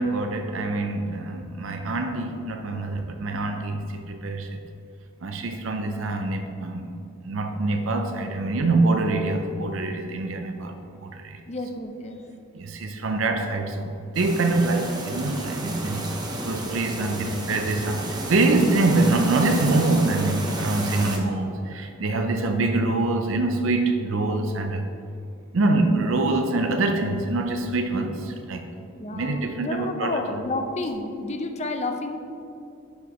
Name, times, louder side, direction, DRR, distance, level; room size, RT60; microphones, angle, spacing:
voice 1, 0.0-4.6 5.2-7.0 7.2-11.4 12.5-16.1 16.5-24.9 25.5-28.6 29.1-30.2, right 2 dB, 70° right, 6 dB, 0.5 m, -25 dB
voice 2, 11.5-12.2 18.4-18.8 26.0-26.5 28.9-32.2, left 2 dB, 30° left, 5 dB, 0.6 m, -31 dB
sound 1, 14.1-21.2, right 1 dB, 20° right, 0.8 m, -32 dB
10.5 x 6.1 x 3.0 m, 2.6 s
head